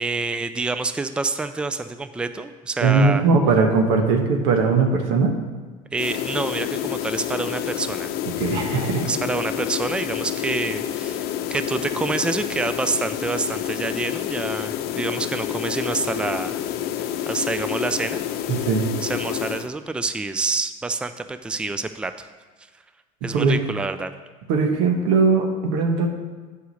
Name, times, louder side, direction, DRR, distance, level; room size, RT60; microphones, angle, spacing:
voice 1, 0.0-3.2 5.9-8.1 9.0-16.6 17.3-18.2 19.0-22.3 23.2-24.1, right 3 dB, 5° right, 10 dB, 0.4 m, -27 dB
voice 2, 2.8-5.4 8.2-9.1 18.5-18.9 23.3-23.6 24.5-26.1, right 4 dB, 80° right, 3 dB, 1.3 m, -19 dB
sound 1, 6.0-19.7, left 11 dB, 60° left, 0.7 m, -28 dB
8.2 x 5.0 x 6.4 m, 1.4 s
supercardioid pair, 105°, 18 cm